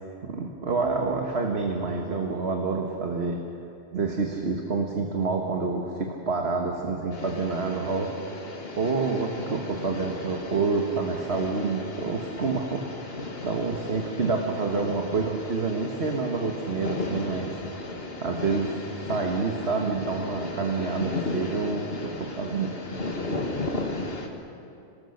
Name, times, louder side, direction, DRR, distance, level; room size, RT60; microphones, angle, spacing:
voice 1, 0.2-3.4 3.9-8.1 8.8-17.6 18.2-18.7 19.1-22.7, right 4 dB, 70° right, 1 dB, 1.7 m, -28 dB
sound 1, 7.1-24.3, left 2 dB, 60° left, 2.1 m, -35 dB
25.5 x 20.0 x 6.6 m, 2.7 s
omnidirectional pair, 1.1 m